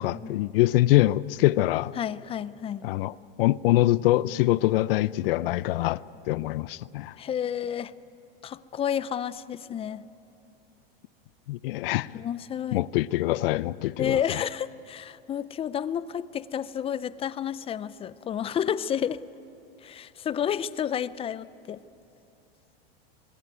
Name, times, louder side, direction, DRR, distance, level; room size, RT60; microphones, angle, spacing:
voice 1, 0.0-1.9 2.8-6.0 6.3-7.1 11.5-12.2 12.7-14.4, left 16 dB, 70° left, 0.6 m, -24 dB
voice 2, 2.0-2.9 7.2-7.9 8.4-10.0 12.1-12.8 14.0-19.2 19.8-21.8, left 9 dB, 20° left, 0.5 m, -30 dB
23.0 x 21.0 x 9.2 m
supercardioid pair, 125°, 30 cm